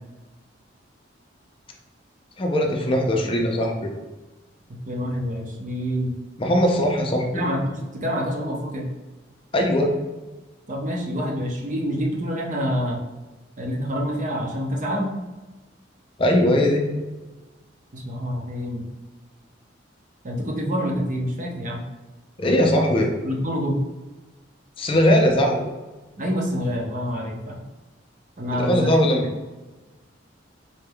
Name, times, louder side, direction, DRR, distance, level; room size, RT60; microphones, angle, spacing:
voice 1, 2.4-3.9 6.4-7.4 9.5-9.9 16.2-16.8 22.4-23.1 24.8-25.7 28.5-29.2, equal, 30° left, 2 dB, 0.5 m, -20 dB
voice 2, 4.9-6.1 7.3-8.9 10.7-13.0 13.6-15.1 17.9-18.9 20.2-21.8 23.2-23.8 26.2-27.6 28.4-29.2, equal, 40° right, -1 dB, 0.6 m, -27 dB
4.1 x 3.3 x 2.2 m, 1.2 s
head